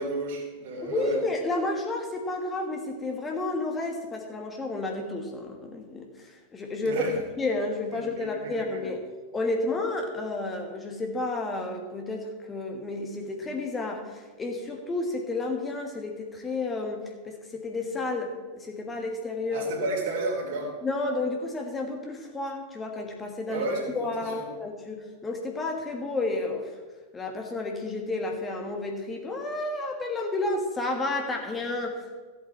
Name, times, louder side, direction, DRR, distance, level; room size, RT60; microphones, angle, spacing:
voice 1, 0.0-1.2 6.8-7.1 7.9-8.8 19.5-20.7 23.5-24.5, right 2 dB, 55° right, 0 dB, 3.2 m, -32 dB
voice 2, 0.8-7.1 7.4-9.0 9.3-19.7 20.8-23.7 23.9-26.7 27.1-32.2, left 2 dB, 15° left, 2 dB, 1.6 m, -31 dB
14.5 x 8.0 x 4.5 m, 1.4 s
figure-of-eight pair, 90°, 0 cm